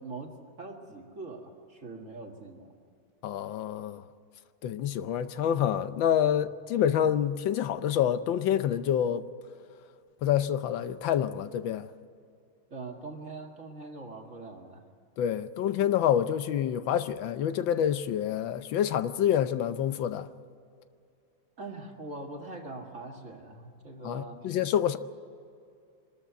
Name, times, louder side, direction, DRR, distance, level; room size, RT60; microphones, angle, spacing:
voice 1, 0.0-2.7 12.7-14.8 21.6-24.4, right 3 dB, 40° right, 2.1 m, -42 dB
voice 2, 3.2-4.0 4.6-9.2 10.2-11.9 15.2-20.3 24.0-25.0, left 9 dB, 70° left, 1.4 m, -27 dB
24.5 x 13.5 x 9.2 m
omnidirectional pair, 2.3 m